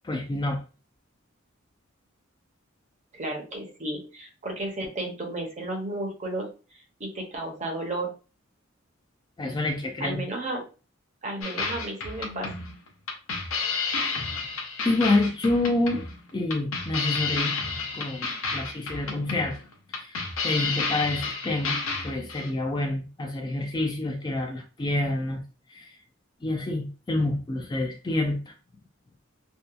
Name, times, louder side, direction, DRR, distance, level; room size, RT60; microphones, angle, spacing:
voice 1, 0.0-0.6 9.4-10.2 14.8-16.1 16.3-17.5 17.9-19.6 19.9-21.8 22.0-25.4 25.7-26.0 26.4-28.5, left 2 dB, 20° left, 2 dB, 0.3 m, -28 dB
voice 2, 3.1-6.5 7.0-8.1 10.0-10.6 11.2-12.5, right 1 dB, 35° right, 1 dB, 0.7 m, -33 dB
sound 1, 11.4-22.5, left 4 dB, 75° left, 0.6 m, -31 dB
2.7 x 2.2 x 2.3 m, 0.34 s
head